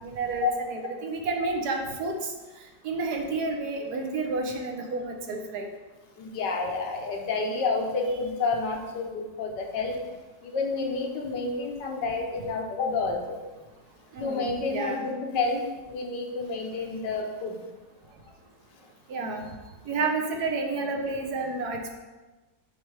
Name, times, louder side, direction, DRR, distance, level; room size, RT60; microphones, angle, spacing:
voice 1, 0.0-2.3 2.8-5.7 14.1-15.1 19.1-19.5 19.9-21.9, right 3 dB, 70° right, 3 dB, 1.2 m, -30 dB
voice 2, 6.2-10.0 10.4-13.4 14.2-17.6, left 3 dB, 80° left, 2 dB, 1.5 m, -29 dB
7.5 x 3.2 x 4.7 m, 1.2 s
omnidirectional pair, 1.9 m